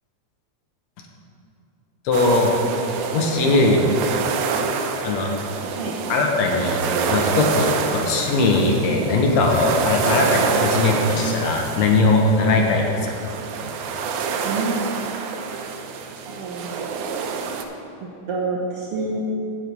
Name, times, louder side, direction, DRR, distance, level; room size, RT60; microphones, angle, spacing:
voice 1, 2.1-2.5 3.1-3.8 5.0-5.3 6.1-12.8 13.1-13.2, left 3 dB, 70° left, 1 dB, 2.0 m, -20 dB
sound 1, 2.1-17.6, right 5 dB, 85° right, 2.0 m, -27 dB
voice 2, 16.2-17.0 18.0-19.2, right 4 dB, 65° right, -4 dB, 1.5 m, -28 dB
8.1 x 7.8 x 5.2 m, 2.8 s
omnidirectional pair, 3.4 m